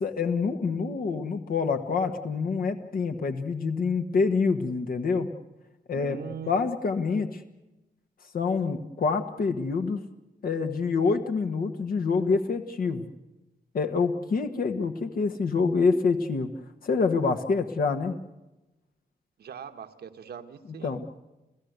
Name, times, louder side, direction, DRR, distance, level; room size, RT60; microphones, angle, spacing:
voice 1, 0.0-5.3 5.9-6.2 6.5-7.4 8.3-10.0 10.4-13.0 13.7-16.5 16.8-18.1 20.8-21.2, left 4 dB, 60° left, 6 dB, 1.4 m, -26 dB
voice 2, 5.9-6.5 19.4-20.9, right 8 dB, 80° right, 7 dB, 1.5 m, -40 dB
29.5 x 15.0 x 8.1 m, 0.99 s
wide cardioid pair, 130°, 17 cm